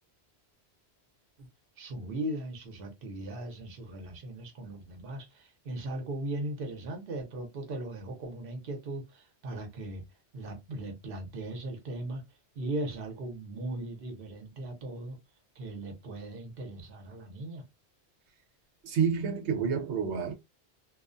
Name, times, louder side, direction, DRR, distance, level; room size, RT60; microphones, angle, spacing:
voice 1, 1.8-10.0 10.3-12.2 12.6-15.2 15.6-17.7, right 1 dB, 60° right, 1.0 m, -38 dB
voice 2, 18.8-20.3, right 6 dB, 90° right, 0.9 m, -29 dB
2.4 x 2.2 x 2.5 m
omnidirectional pair, 1.1 m